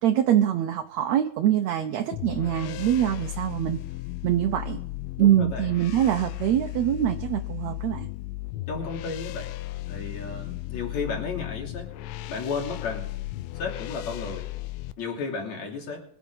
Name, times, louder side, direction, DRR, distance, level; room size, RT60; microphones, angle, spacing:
voice 1, 0.0-3.8 4.2-4.8 5.2-8.1, right 11 dB, 70° right, 5 dB, 1.8 m, -24 dB
sound 1, 2.1-14.9, left 17 dB, 85° left, 2.2 m, -35 dB
voice 2, 5.2-5.7 8.7-9.5 9.9-11.9 12.3-13.1 13.6-14.5 15.0-16.0, left 4 dB, 55° left, 0 dB, 4.0 m, -33 dB
22.5 x 8.7 x 3.8 m, 0.68 s
omnidirectional pair, 3.8 m